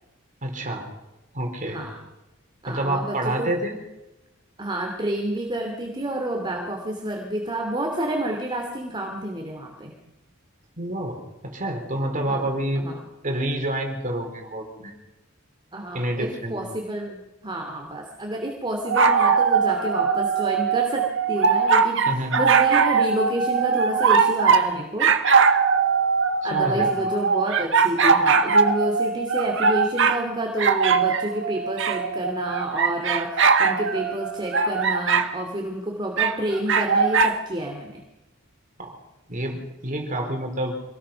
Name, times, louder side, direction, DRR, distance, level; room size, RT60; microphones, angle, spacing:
voice 1, 0.4-0.9 1.3-1.8 2.7-3.8 10.8-12.8 13.2-14.9 15.9-16.6 22.1-22.4 26.5-27.0 38.8-39.0 39.3-40.7, right 1 dB, 40° right, 3 dB, 4.3 m, -28 dB
voice 2, 1.7-2.0 2.6-3.5 4.6-9.9 12.3-12.5 12.8-13.0 15.7-25.1 26.4-38.0, right 1 dB, 25° right, 1 dB, 2.7 m, -29 dB
sound 1, 18.8-24.7 25.0-30.2 30.6-35.3 36.2-37.4, right 5 dB, 65° right, 1.7 m, -21 dB
26.0 x 19.0 x 5.9 m, 1.0 s
head